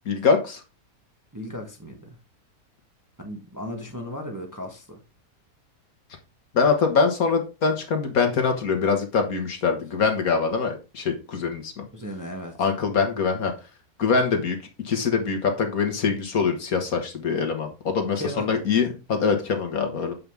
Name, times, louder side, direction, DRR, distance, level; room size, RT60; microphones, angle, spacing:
voice 1, 0.1-0.6 6.5-11.8 12.6-13.5 14.0-14.6 14.8-20.1, left 5 dB, 65° left, 1.8 m, -23 dB
voice 2, 1.3-2.2 3.2-5.0 11.9-12.7 18.1-18.5, equal, 15° right, 1.1 m, -36 dB
7.7 x 5.5 x 3.5 m
omnidirectional pair, 1.7 m